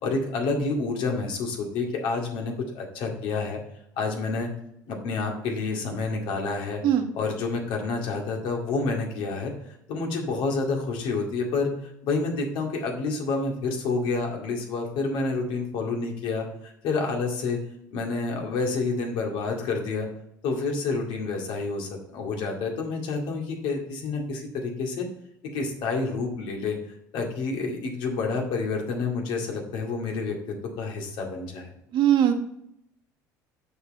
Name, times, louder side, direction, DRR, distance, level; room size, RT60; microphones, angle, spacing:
voice 1, 0.0-3.6 4.0-4.5 4.9-6.8 7.1-9.5 9.9-11.7 12.0-17.6 17.9-20.1 20.4-25.1 25.5-31.7, left 3 dB, 60° left, 1 dB, 2.2 m, -29 dB
voice 2, 31.9-32.3, right 10 dB, 55° right, 6 dB, 1.2 m, -20 dB
6.8 x 6.5 x 4.1 m, 0.75 s
hypercardioid pair, 65°, 10 cm